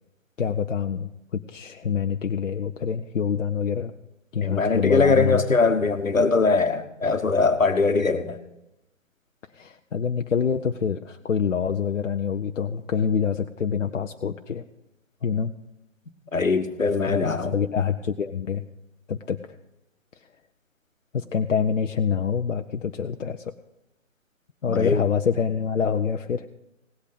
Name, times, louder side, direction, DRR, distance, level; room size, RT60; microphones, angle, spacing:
voice 1, 0.4-3.9 4.3-5.4 9.5-14.6 15.2-15.5 17.0-18.6 19.1-19.4 21.1-23.5 24.6-26.5, left 7 dB, 70° left, 6 dB, 0.7 m, -26 dB
voice 2, 4.4-8.4 16.3-17.5 24.7-25.0, left 4 dB, 85° left, 9 dB, 1.2 m, -21 dB
17.5 x 8.3 x 5.1 m, 0.89 s
figure-of-eight pair, 140°, 39 cm